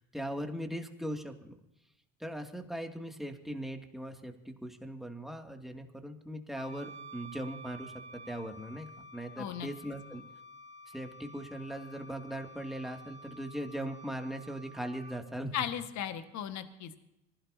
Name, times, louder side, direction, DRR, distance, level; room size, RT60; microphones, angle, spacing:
voice 1, 0.0-1.5 2.2-10.2 10.9-15.7, right 1 dB, ahead, 3 dB, 2.5 m, -40 dB
Wind instrument woodwind instrument, 6.5-15.2, right 1 dB, 20° right, 2.5 m, -50 dB
voice 2, 9.4-9.7 15.5-17.0, left 9 dB, 50° left, 9 dB, 1.7 m, -36 dB
25.5 x 16.0 x 2.8 m, 0.87 s
hypercardioid pair, 70°, 36 cm